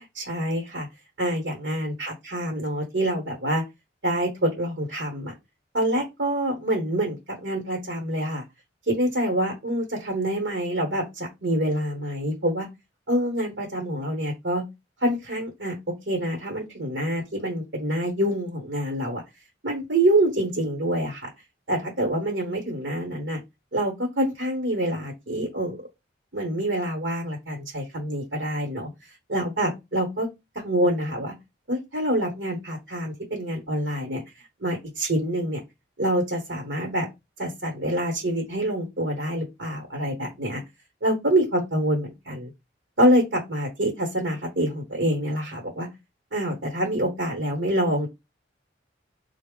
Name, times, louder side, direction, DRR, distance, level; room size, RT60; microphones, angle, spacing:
voice 1, 0.2-0.9 1.2-3.6 4.0-5.3 5.7-8.4 8.9-12.7 13.1-14.6 15.0-15.8 16.1-19.2 19.6-21.3 21.7-23.4 23.7-25.8 26.3-30.3 30.5-31.3 31.7-34.2 34.6-35.6 36.0-37.1 37.4-40.6 41.0-42.5 43.0-45.9 46.3-48.1, right 1 dB, 60° right, 0 dB, 1.0 m, -26 dB
3.9 x 2.1 x 3.6 m, 0.22 s
head